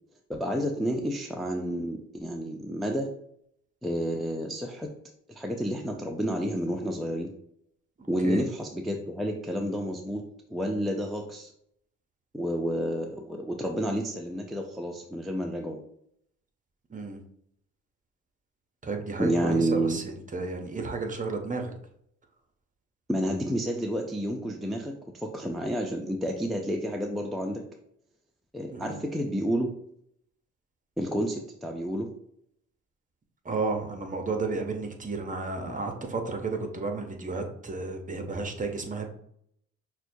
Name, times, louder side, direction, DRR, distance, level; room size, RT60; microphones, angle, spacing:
voice 1, 0.3-3.1 3.8-4.9 5.3-7.3 8.1-10.2 10.5-11.5 12.3-15.8 19.2-20.0 23.1-27.6 28.5-29.7 31.0-32.1, equal, ahead, 1 dB, 0.4 m, -30 dB
voice 2, 8.0-8.4 16.9-17.2 18.8-21.7 28.7-29.0 33.4-39.1, right 3 dB, 25° right, 4 dB, 0.7 m, -32 dB
5.9 x 2.2 x 2.6 m, 0.70 s
cardioid pair, 90°, 30 cm